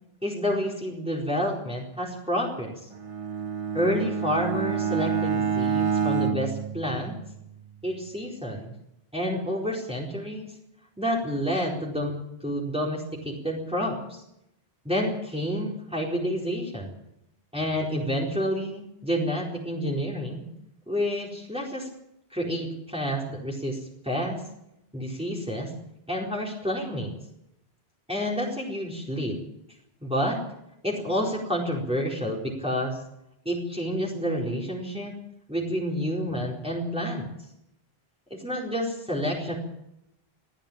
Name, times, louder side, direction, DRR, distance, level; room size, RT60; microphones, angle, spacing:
voice 1, 0.2-2.9 3.7-7.2 7.8-8.7 9.1-10.5 11.0-12.2 12.4-14.2 14.8-16.9 17.5-20.5 20.9-21.9 22.3-23.8 24.0-24.4 24.9-25.7 26.1-27.1 28.1-29.4 30.0-30.4 30.8-33.0 33.4-35.1 35.5-37.2 38.3-39.6, equal, 5° right, -3 dB, 4.4 m, -29 dB
Bowed string instrument, 2.9-7.6, right 6 dB, 35° right, 0.9 m, -28 dB
20.5 x 14.5 x 8.8 m, 0.81 s
omnidirectional pair, 1.0 m